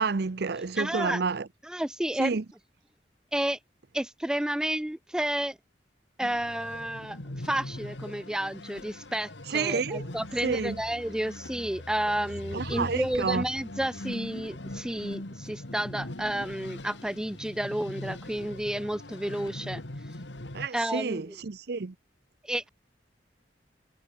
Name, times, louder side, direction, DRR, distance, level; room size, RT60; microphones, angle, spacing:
voice 1, 0.0-1.5 2.2-2.4 9.5-10.0 10.4-10.8 12.5-13.4 20.5-21.9, right 4 dB, 60° right, 0.7 m, -29 dB
voice 2, 0.8-1.2 1.6-2.4 3.3-3.6 3.9-5.6 6.2-19.8 20.7-21.4 22.4-22.7, right 1 dB, 5° right, 0.3 m, -31 dB
sound 1, 6.2-20.7, left 1 dB, 85° left, 2.4 m, -41 dB
head